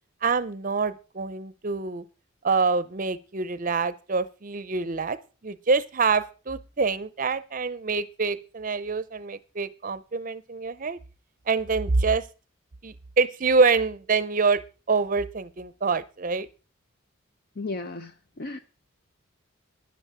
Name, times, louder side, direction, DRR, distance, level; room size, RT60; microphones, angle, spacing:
voice 1, 0.2-2.0 2.4-5.2 5.4-11.0 11.5-12.3 12.8-14.6 14.9-16.5, right 4 dB, 40° right, 0.6 m, -25 dB
voice 2, 17.6-18.6, left 3 dB, 50° left, 0.6 m, -35 dB
11.0 x 10.5 x 4.9 m
head